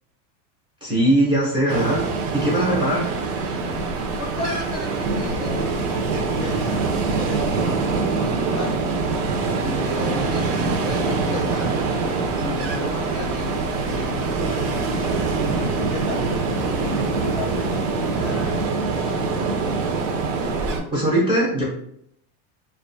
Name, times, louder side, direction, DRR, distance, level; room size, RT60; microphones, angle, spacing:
voice 1, 0.8-2.0 2.3-3.1 20.9-21.6, right 1 dB, 10° right, -6 dB, 0.6 m, -20 dB
Ocean, 1.7-20.8, right 4 dB, 55° right, 0.5 m, -24 dB
sound 1, 3.6-18.7, right 2 dB, 90° right, 1.0 m, -35 dB
voice 2, 4.2-8.9 9.6-11.9 12.4-16.3 16.5-19.5, left 3 dB, 35° left, -2 dB, 0.5 m, -35 dB
2.4 x 2.2 x 2.5 m, 0.72 s
supercardioid pair, 150°, 45 cm